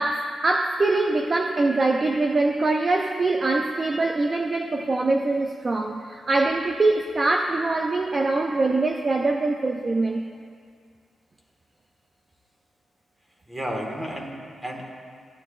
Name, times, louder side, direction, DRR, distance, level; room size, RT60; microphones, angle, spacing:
voice 1, 0.0-10.3, right 2 dB, 30° right, 3 dB, 0.5 m, -23 dB
voice 2, 13.5-14.8, equal, 15° right, 0 dB, 1.6 m, -32 dB
16.5 x 11.5 x 2.5 m, 2.1 s
wide cardioid pair, 130°, 0 cm